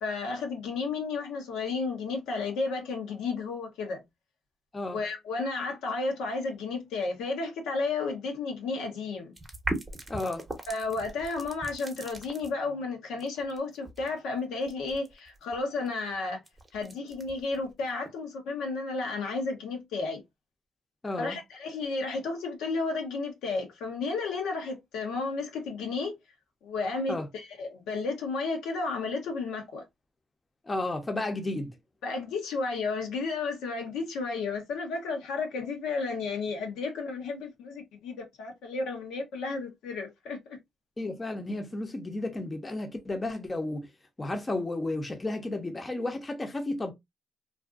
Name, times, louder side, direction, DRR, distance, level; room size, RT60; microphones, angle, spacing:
voice 1, 0.0-4.0 4.9-9.3 10.7-16.4 16.7-20.2 21.2-26.1 26.6-29.8 32.0-40.6, left 3 dB, 90° left, 0.8 m, -32 dB
sound 1, 9.4-12.5 13.2-18.1, right 2 dB, 20° right, 0.8 m, -39 dB
voice 2, 10.1-10.4 21.0-21.4 27.1-27.3 30.7-31.7 41.0-43.9 44.2-46.9, left 2 dB, 20° left, 0.6 m, -32 dB
2.5 x 2.4 x 2.3 m
cardioid pair, 90°, 0 cm